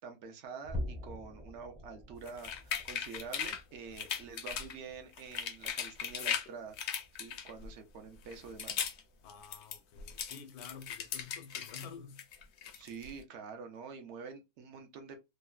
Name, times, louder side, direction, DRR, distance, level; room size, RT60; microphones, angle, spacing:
voice 1, 0.0-6.8 7.2-8.9 12.8-15.2, right 5 dB, 60° right, 0.8 m, -47 dB
sound 1, 0.6-7.3 7.7-8.0 8.4-8.5 9.1-9.2, left 1 dB, 10° right, 0.4 m, -46 dB
sound 2, 2.3-3.6 4.0-4.8 5.1-6.5 6.8-7.7 8.2-9.0 9.3-11.9 12.2-13.1, left 8 dB, 65° left, 0.7 m, -38 dB
voice 2, 9.2-12.3, left 6 dB, 85° left, 1.1 m, -50 dB
3.1 x 2.0 x 2.3 m
omnidirectional pair, 1.6 m